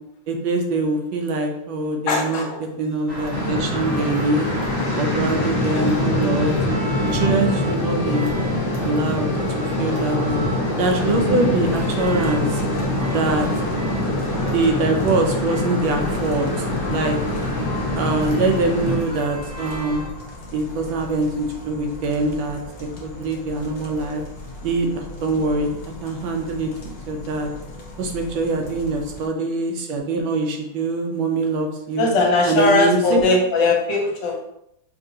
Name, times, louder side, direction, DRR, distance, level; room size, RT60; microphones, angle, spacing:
voice 1, 0.3-2.5 2.8-4.5 4.9-6.5 7.1-8.3 8.8-9.3 9.6-10.4 10.8-12.6 13.1-13.5 14.5-17.2 17.9-20.1 20.5-24.2 24.6-26.7 27.1-27.5 28.0-32.1 32.5-33.2, right 3 dB, 75° right, 3 dB, 1.3 m, -23 dB
voice 2, 2.1-2.6 5.6-5.9 6.6-6.7 31.9-34.4, left 3 dB, 70° left, 1 dB, 1.3 m, -20 dB
sound 1, 3.1-20.1, right 1 dB, 55° right, 0.9 m, -33 dB
sound 2, 3.3-19.0, left 1 dB, 40° left, 1.4 m, -24 dB
sound 3, 11.6-29.3, left 2 dB, 90° left, 0.5 m, -38 dB
5.1 x 2.8 x 2.7 m, 0.79 s
omnidirectional pair, 2.3 m